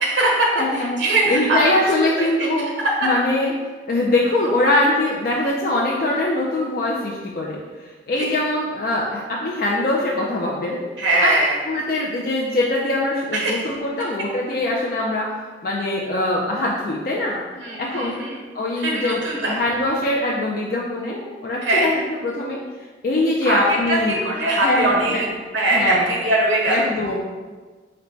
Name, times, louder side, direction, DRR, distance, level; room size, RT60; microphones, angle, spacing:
voice 1, 0.0-0.5 0.8-1.7 2.2-2.5 3.0-3.1 11.0-11.6 13.3-13.6 17.5-18.4 18.8-19.5 21.6-21.9 23.4-25.3 25.5-26.9, right 2 dB, 90° right, -2 dB, 1.0 m, -21 dB
voice 2, 0.6-1.0 1.3-3.5 3.9-10.8 11.2-11.3 11.7-17.4 17.8-18.2 18.5-24.2 24.6-25.3 25.7-26.1 26.7-27.2, left 1 dB, 50° left, -3 dB, 0.4 m, -22 dB
3.8 x 2.1 x 4.4 m, 1.3 s
head